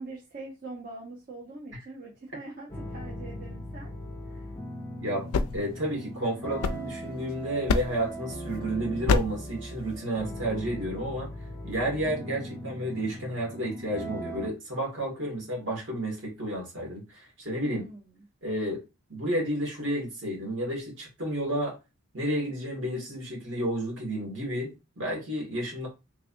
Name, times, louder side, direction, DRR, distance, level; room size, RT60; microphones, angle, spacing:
voice 1, 0.0-3.9 4.3-4.5 17.6-18.2, right 2 dB, 40° right, 0.8 m, -43 dB
sound 1, 2.7-14.5, equal, 15° left, 0.6 m, -39 dB
voice 2, 5.0-11.3 11.6-17.8 18.4-18.8 19.1-21.8 22.1-25.9, right 1 dB, 60° right, 1.8 m, -31 dB
sound 2, 5.1-7.3 7.7-8.2 9.1-9.5, left 4 dB, 80° left, 0.3 m, -28 dB
3.3 x 3.2 x 2.6 m
head